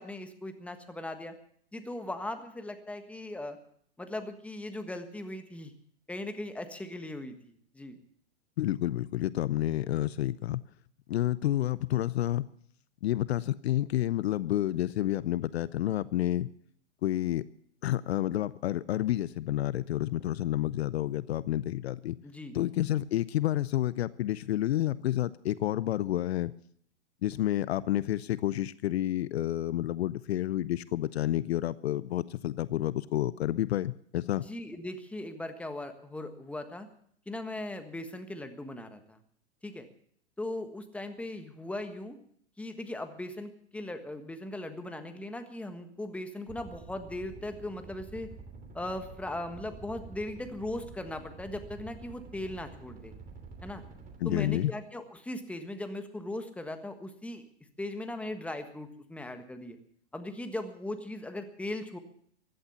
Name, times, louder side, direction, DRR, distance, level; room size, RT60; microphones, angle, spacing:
voice 1, 0.0-1.3 1.7-3.6 4.0-5.7 6.1-8.0 22.2-22.6 34.4-36.9 37.3-39.2 39.6-39.9 40.4-42.2 42.6-48.3 48.7-53.1 53.6-53.8 54.2-57.4 57.8-59.8 60.1-62.0, left 1 dB, 5° left, 7 dB, 1.4 m, -38 dB
voice 2, 8.6-10.6 11.1-12.5 13.0-16.5 17.0-17.4 17.8-22.2 22.5-26.5 27.2-34.4 54.2-54.7, left 13 dB, 65° left, 19 dB, 0.6 m, -29 dB
sound 1, 46.5-54.2, right 4 dB, 25° right, 2.7 m, -48 dB
15.5 x 11.5 x 7.1 m, 0.64 s
hypercardioid pair, 115°, 34 cm